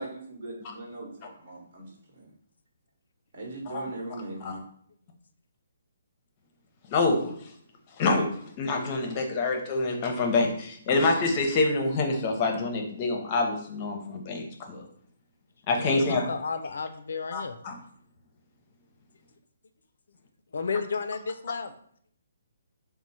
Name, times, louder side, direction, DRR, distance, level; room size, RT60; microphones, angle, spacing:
voice 1, 0.0-2.3 3.3-4.6, right 2 dB, 55° right, -1 dB, 1.1 m, -40 dB
voice 2, 6.9-7.4 8.0-8.3 8.6-14.9 15.7-16.2 17.3-17.8, left 3 dB, 30° left, 3 dB, 0.6 m, -26 dB
voice 3, 15.7-17.6 20.5-21.7, left 5 dB, 75° left, 9 dB, 0.3 m, -32 dB
3.1 x 2.0 x 4.0 m, 0.62 s
hypercardioid pair, 155°, 0 cm